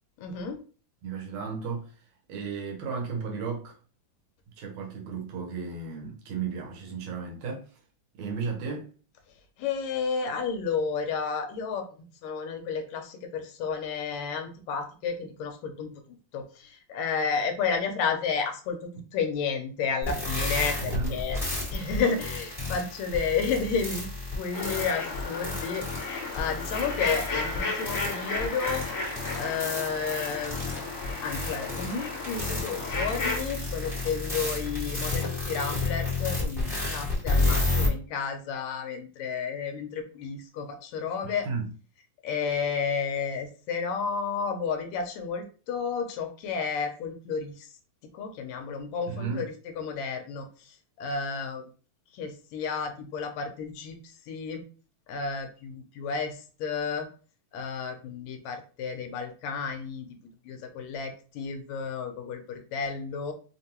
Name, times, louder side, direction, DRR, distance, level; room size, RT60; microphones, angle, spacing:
voice 1, 0.2-0.6 9.6-11.8 12.2-15.9 16.3-21.4 21.7-24.1 24.4-28.9 29.3-30.9 31.2-41.5 42.2-47.7 48.1-51.6 52.1-54.0 54.3-54.7 55.1-57.1 57.5-60.1 60.5-63.3, left 5 dB, 75° left, 1.7 m, -32 dB
voice 2, 1.0-1.9 2.3-3.8 4.6-7.7 8.2-8.9 20.8-21.2 41.2-41.7 49.1-49.5, right 5 dB, 70° right, 2.0 m, -34 dB
sound 1, 20.0-37.9, left 2 dB, ahead, 0.7 m, -31 dB
sound 2, 24.5-33.4, left 3 dB, 60° left, 2.0 m, -34 dB
5.3 x 2.2 x 2.9 m
omnidirectional pair, 3.5 m